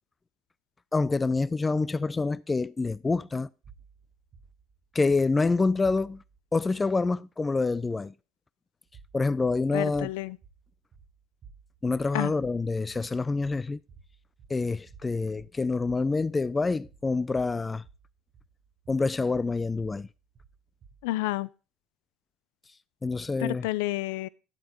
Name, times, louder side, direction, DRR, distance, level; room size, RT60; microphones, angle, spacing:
voice 1, 0.9-3.5 4.9-6.2 6.5-8.1 9.1-10.1 11.8-13.8 14.5-17.8 18.9-20.1 23.0-23.7, left 3 dB, 15° left, 0.3 m, -27 dB
sound 1, 3.6-6.4 8.8-21.2, right 6 dB, 40° right, 1.1 m, -55 dB
voice 2, 9.7-10.4 12.1-12.3 21.0-21.5 23.4-24.3, left 17 dB, 85° left, 0.4 m, -30 dB
9.9 x 7.9 x 3.0 m
supercardioid pair, 115°, 0 cm